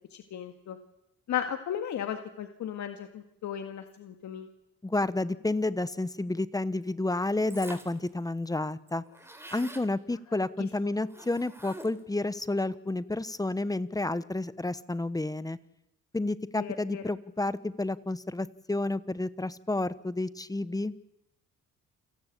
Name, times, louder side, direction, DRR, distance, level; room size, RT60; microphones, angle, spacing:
voice 1, 0.1-0.8 1.3-4.5 10.8-10.9 16.5-17.0, left 9 dB, 70° left, 6 dB, 2.0 m, -35 dB
voice 2, 4.8-9.0 9.5-15.6 16.1-20.9, left 2 dB, 10° left, 16 dB, 1.1 m, -30 dB
sound 1, 7.5-8.1 8.4-8.5 8.7-9.9 11.1-12.1, right 1 dB, 10° right, 3.6 m, -46 dB
28.5 x 18.5 x 8.5 m, 0.86 s
cardioid pair, 90°, 30 cm